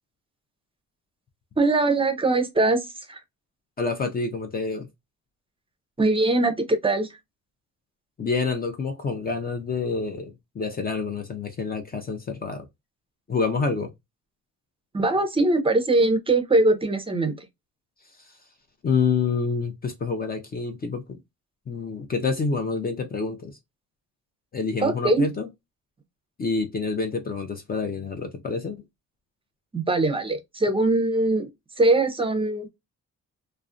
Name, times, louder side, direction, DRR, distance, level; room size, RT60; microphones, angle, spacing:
voice 1, 1.6-3.2 6.0-7.1 14.9-17.3 24.8-25.3 29.7-31.5 31.8-32.7, right 2 dB, 20° right, 0.6 m, -22 dB
voice 2, 3.8-4.9 8.2-12.7 13.3-13.9 18.8-21.2 21.7-23.6 24.5-25.5 26.4-28.8, left 4 dB, 30° left, 0.5 m, -27 dB
2.4 x 2.1 x 2.4 m
cardioid pair, 90°, 30 cm